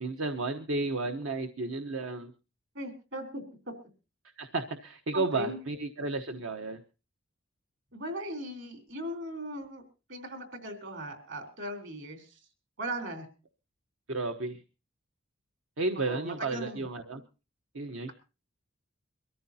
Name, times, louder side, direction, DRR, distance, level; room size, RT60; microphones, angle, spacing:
voice 1, 0.0-2.3 4.4-6.8 14.1-14.6 15.8-17.2 17.7-18.1, right 3 dB, 85° right, 6 dB, 1.0 m, -32 dB
voice 2, 2.8-3.4 5.1-5.6 7.9-9.8 10.1-12.3 12.8-13.3 16.0-16.8, right 1 dB, 65° right, 7 dB, 3.6 m, -38 dB
23.5 x 14.0 x 2.8 m, 0.32 s
head